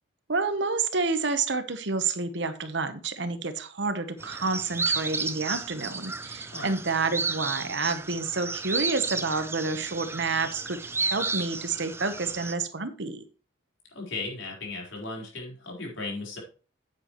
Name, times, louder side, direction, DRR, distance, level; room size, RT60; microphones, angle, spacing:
voice 1, 0.3-13.2, right 4 dB, 65° right, 10 dB, 1.1 m, -29 dB
sound 1, 4.2-12.5, right 4 dB, 10° right, 0.4 m, -33 dB
voice 2, 13.9-16.4, left 3 dB, 75° left, -1 dB, 4.2 m, -36 dB
9.3 x 8.9 x 3.1 m, 0.36 s
head